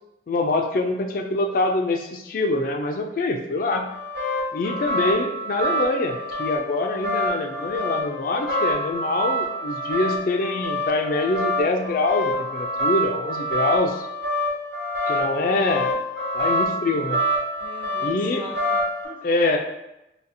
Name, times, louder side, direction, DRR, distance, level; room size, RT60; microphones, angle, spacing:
voice 1, 0.3-3.9 4.5-14.1 15.1-15.9 16.3-17.2 18.0-18.4 19.2-19.6, left 2 dB, 55° left, 4 dB, 0.3 m, -24 dB
sound 1, 3.7-19.1, equal, 85° right, 1.3 m, -27 dB
voice 2, 17.6-19.2, equal, 30° right, -2 dB, 0.7 m, -43 dB
4.0 x 2.7 x 2.6 m, 0.90 s
head